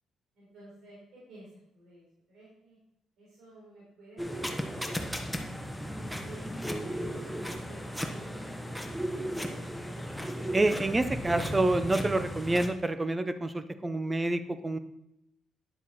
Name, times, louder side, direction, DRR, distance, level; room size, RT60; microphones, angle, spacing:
voice 1, 0.3-2.8 3.2-9.6, right 2 dB, 80° right, -6 dB, 4.1 m, -53 dB
sound 1, 4.2-12.7, equal, ahead, 1.3 m, -35 dB
voice 2, 10.5-14.8, right 2 dB, 20° right, 11 dB, 0.8 m, -28 dB
10.0 x 7.3 x 4.2 m, 0.81 s
cardioid pair, 90°, 0 cm